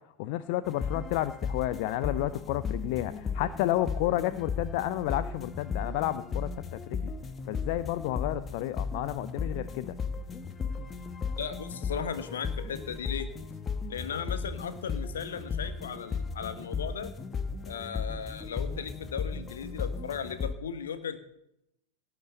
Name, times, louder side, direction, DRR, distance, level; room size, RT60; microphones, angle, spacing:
voice 1, 0.2-7.1 7.5-9.9, left 14 dB, 45° left, 13 dB, 0.5 m, -31 dB
sound 1, 0.6-20.5, left 5 dB, 20° left, 1.0 m, -35 dB
voice 2, 11.4-13.3 13.9-17.1 17.6-21.2, left 7 dB, 65° left, 10 dB, 1.3 m, -36 dB
17.5 x 6.0 x 8.0 m, 0.81 s
figure-of-eight pair, 90°, 0 cm